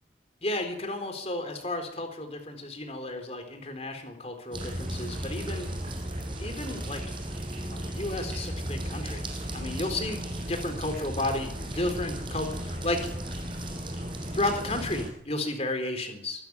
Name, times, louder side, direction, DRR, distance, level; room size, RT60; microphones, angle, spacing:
voice 1, 0.4-5.7 6.4-7.0 7.6-10.2 10.5-13.1 14.3-16.5, left 2 dB, 35° left, 6 dB, 4.1 m, -33 dB
sound 1, 4.5-15.1, right 1 dB, 25° right, 5.9 m, -35 dB
25.0 x 13.0 x 9.7 m, 0.72 s
head